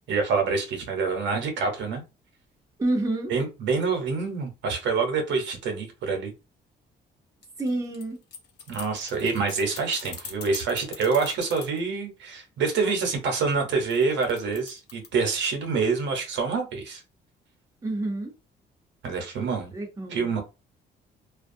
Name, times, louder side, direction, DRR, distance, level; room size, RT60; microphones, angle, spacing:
voice 1, 0.1-2.0 3.3-6.3 8.7-17.0 19.0-19.7 20.1-20.4, right 4 dB, 80° right, 0.9 m, -26 dB
voice 2, 2.8-3.3 7.6-8.2 17.8-18.3 19.7-20.3, right 2 dB, 15° right, 0.8 m, -28 dB
sound 1, 7.4-11.8 13.9-15.1, left 6 dB, 65° left, 0.8 m, -42 dB
2.3 x 2.2 x 2.6 m
cardioid pair, 100°, 19 cm